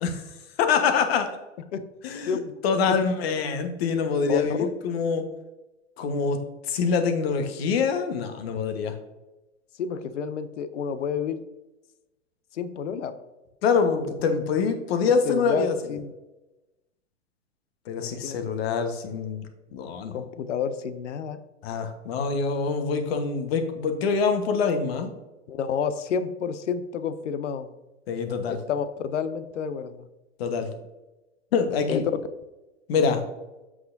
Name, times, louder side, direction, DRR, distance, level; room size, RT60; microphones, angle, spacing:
voice 1, 0.6-1.3 2.0-5.2 6.0-6.4 6.7-8.9 13.6-15.7 17.9-19.4 19.7-20.1 21.6-25.1 28.1-28.6 30.4-30.7 31.5-32.0 32.9-33.2, left 5 dB, 55° left, 7 dB, 1.2 m, -25 dB
voice 2, 9.8-11.4 12.5-13.1 15.3-16.1 18.0-18.4 20.1-21.4 25.5-27.7 28.5-30.1 31.9-32.0, left 6 dB, 70° left, 12 dB, 0.7 m, -30 dB
7.7 x 6.0 x 2.6 m, 1.0 s
hypercardioid pair, 110°, 37 cm